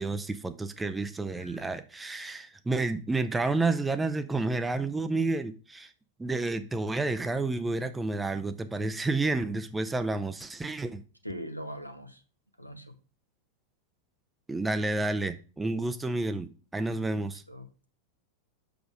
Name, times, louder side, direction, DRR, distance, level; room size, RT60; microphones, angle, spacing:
voice 1, 0.0-5.9 6.2-11.0 14.5-17.4, right 2 dB, 10° right, 9 dB, 0.5 m, -30 dB
voice 2, 1.4-1.7 11.2-12.2 12.6-13.0 17.2-17.9, equal, 90° left, 8 dB, 0.8 m, -42 dB
6.1 x 5.3 x 4.8 m, 0.36 s
figure-of-eight pair, 90°, 0 cm